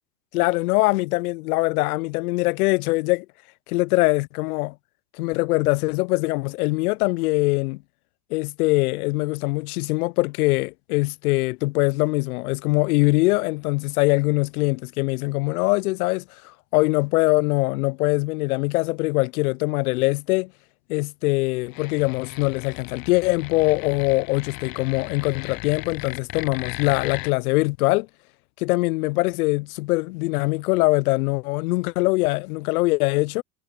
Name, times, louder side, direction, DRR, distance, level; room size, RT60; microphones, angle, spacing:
voice 1, 0.3-3.3 3.7-4.7 5.2-7.8 8.3-20.5 20.9-28.1 28.6-33.4, left 23 dB, 70° left, 0.6 m, -22 dB
sound 1, 21.7-27.3, left 19 dB, 50° left, 1.3 m, -37 dB
hypercardioid pair, 80°, 47 cm